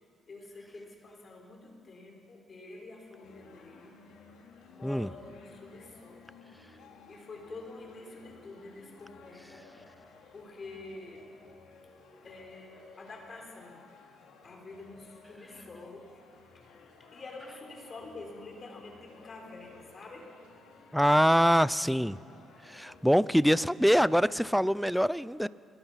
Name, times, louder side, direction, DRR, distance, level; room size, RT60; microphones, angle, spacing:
voice 1, 0.3-4.0 4.7-6.3 6.7-9.7 10.3-11.3 12.2-13.8 14.4-16.2 17.0-20.3, left 2 dB, 40° left, 1 dB, 4.7 m, -47 dB
sound 1, 3.2-23.1, left 4 dB, 90° left, 2.8 m, -56 dB
voice 2, 20.9-22.2 22.7-25.5, equal, ahead, 19 dB, 0.4 m, -24 dB
22.0 x 20.5 x 5.8 m, 2.4 s
cardioid pair, 90°, 0 cm